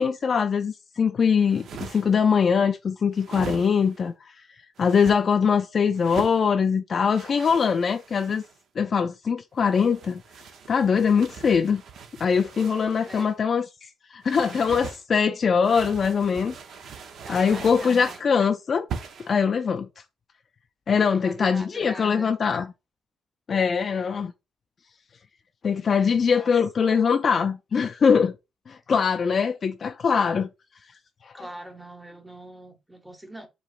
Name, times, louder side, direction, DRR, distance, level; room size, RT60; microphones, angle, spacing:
voice 1, 0.0-4.3 4.8-8.4 8.8-10.2 10.7-11.8 12.2-16.5 17.3-18.9 19.2-19.9 20.9-22.7 23.5-24.3 25.6-28.4 28.7-30.5 31.2-31.3, left 6 dB, 45° left, 0.3 m, -22 dB
sound 1, 1.4-2.3 3.1-4.0 4.8-5.2 5.9-6.4 7.1-8.6 9.6-13.4 14.2-15.0 15.6-18.3 18.9-19.4, right 6 dB, 70° right, 0.7 m, -40 dB
voice 2, 17.2-18.2 21.2-22.3 26.0-26.5 31.3-33.5, right 1 dB, 5° right, 0.9 m, -42 dB
4.6 x 2.9 x 2.4 m
cardioid pair, 105°, 0 cm